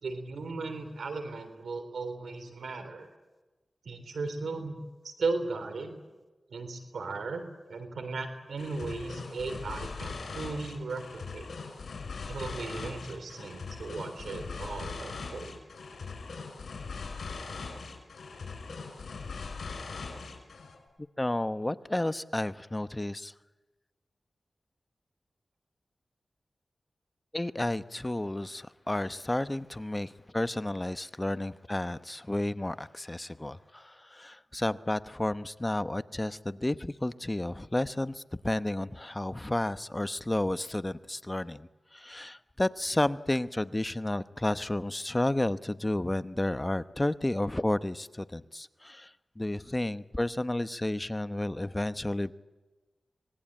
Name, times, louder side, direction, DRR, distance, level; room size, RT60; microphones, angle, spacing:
voice 1, 0.0-3.1 3.8-4.8 5.0-6.0 6.5-11.5 12.3-15.6, right 3 dB, 90° right, 9 dB, 3.5 m, -36 dB
sound 1, 8.6-20.8, left 4 dB, 85° left, 6.1 m, -40 dB
voice 2, 21.2-23.3 27.3-52.3, left 1 dB, 25° left, 13 dB, 0.9 m, -32 dB
25.0 x 20.0 x 8.8 m, 1.2 s
cardioid pair, 45°, 0 cm